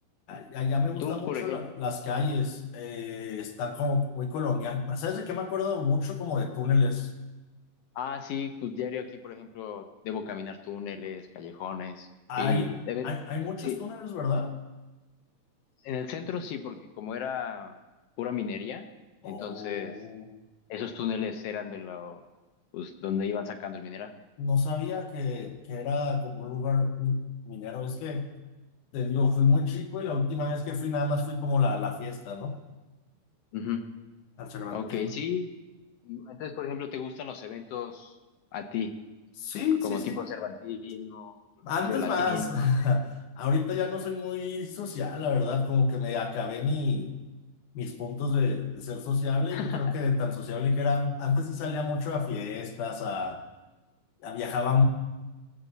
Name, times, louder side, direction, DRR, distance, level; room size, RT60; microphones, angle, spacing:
voice 1, 0.3-7.1 12.3-12.7 13.0-14.6 19.2-20.3 24.4-28.3 28.9-32.6 34.4-35.1 39.4-40.2 41.6-47.1 47.7-53.4 54.2-54.9, left 4 dB, 90° left, 5 dB, 2.5 m, -29 dB
voice 2, 1.0-1.7 7.9-12.1 12.4-13.1 13.6-13.8 15.8-17.8 18.2-18.9 19.2-19.9 20.7-22.2 22.7-24.1 33.5-33.8 34.7-35.5 36.0-38.2 38.5-38.9 39.8-41.4 41.8-42.5 49.5-49.9, left 7 dB, 75° left, 7 dB, 1.5 m, -34 dB
18.0 x 8.1 x 4.0 m, 1.1 s
omnidirectional pair, 3.5 m